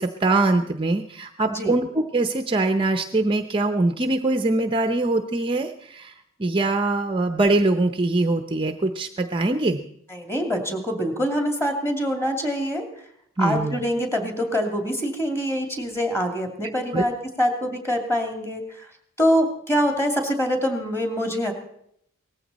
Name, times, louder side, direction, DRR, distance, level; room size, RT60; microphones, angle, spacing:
voice 1, 0.0-6.1 6.4-9.8 13.4-13.8 16.9-17.0, right 2 dB, 25° right, 7 dB, 0.7 m, -23 dB
voice 2, 1.5-1.8 10.1-12.8 13.4-18.9 19.2-21.5, equal, 10° left, 4 dB, 2.6 m, -25 dB
18.5 x 15.0 x 4.2 m, 0.71 s
head